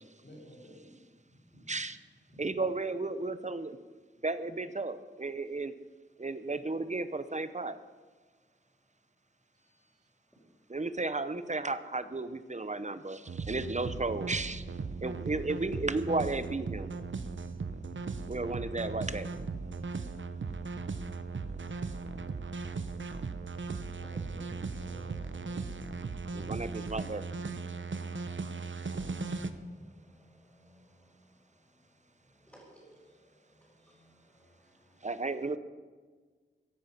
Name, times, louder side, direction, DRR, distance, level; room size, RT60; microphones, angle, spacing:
voice 1, 0.0-1.1 23.9-25.7, equal, 65° left, -2 dB, 4.4 m, -52 dB
voice 2, 1.3-1.8 2.3-2.5 9.5-10.0 10.4-10.8 18.6-18.7 27.7-35.2, equal, 5° left, -8 dB, 5.0 m, -63 dB
voice 3, 2.4-3.8 4.2-5.7 6.2-7.8 10.7-14.6 15.0-16.9 18.3-19.3 26.3-27.2 35.0-35.6, right 3 dB, 35° right, 13 dB, 0.8 m, -34 dB
sound 1, 13.3-29.5, right 4 dB, 70° right, 0.9 m, -38 dB
15.5 x 10.5 x 5.8 m, 1.5 s
wide cardioid pair, 75°, 20 cm